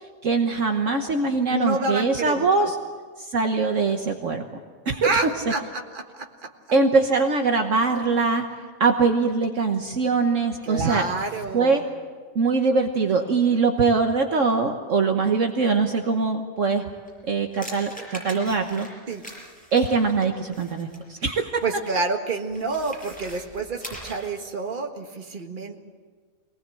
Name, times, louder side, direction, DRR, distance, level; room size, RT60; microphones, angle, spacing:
voice 1, 0.2-2.8 3.2-4.4 4.9-5.1 6.7-8.5 8.8-11.1 11.5-11.8 12.3-16.9 17.3-18.9 19.7-21.6, right 4 dB, 60° right, 4 dB, 1.5 m, -22 dB
voice 2, 1.5-2.7 5.0-6.5 10.6-11.8 19.1-19.2 21.6-25.8, right 3 dB, 35° right, 3 dB, 1.7 m, -28 dB
sound 1, 17.1-21.1 22.5-24.4, equal, 5° left, 6.2 m, -41 dB
23.5 x 19.0 x 7.7 m, 1.5 s
omnidirectional pair, 1.6 m